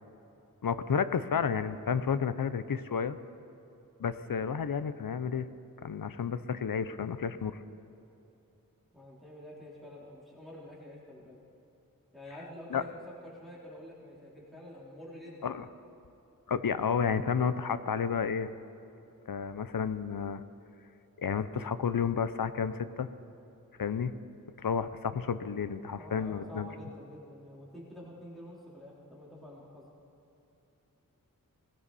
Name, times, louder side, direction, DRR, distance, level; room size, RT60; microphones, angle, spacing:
voice 1, 0.6-3.2 4.0-5.5 5.8-7.6 12.7-12.8 15.4-15.7 16.5-18.5 19.3-20.4 21.2-23.1 23.8-24.1 24.6-26.7, left 6 dB, 80° left, 13 dB, 0.7 m, -31 dB
voice 2, 8.9-11.4 12.1-15.5 26.0-29.9, left 1 dB, ahead, -7 dB, 3.7 m, -48 dB
19.5 x 16.0 x 4.2 m, 2.9 s
wide cardioid pair, 50°, 34 cm